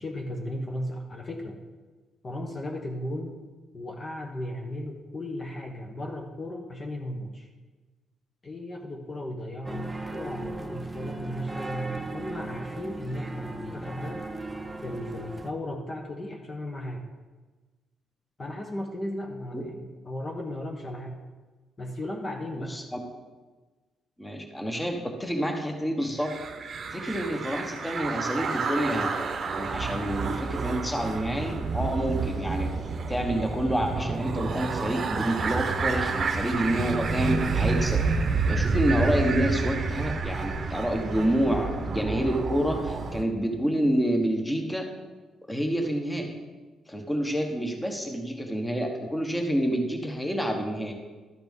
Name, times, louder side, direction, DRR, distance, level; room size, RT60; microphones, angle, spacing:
voice 1, 0.0-1.6 2.2-3.4 3.7-7.5 8.4-14.3 14.8-17.0 18.4-21.2 21.8-22.8, left 1 dB, 35° left, 1 dB, 1.1 m, -35 dB
sound 1, 9.6-15.5, right 2 dB, 10° right, 0.8 m, -37 dB
voice 2, 22.7-23.0 24.2-26.3 26.9-32.7 33.1-38.0 38.5-44.9 45.5-46.3 46.9-50.9, equal, 10° left, 3 dB, 1.3 m, -28 dB
sound 2, 26.2-43.2, right 4 dB, 50° right, 0.8 m, -29 dB
12.0 x 4.3 x 5.4 m, 1.3 s
cardioid pair, 90°, 0 cm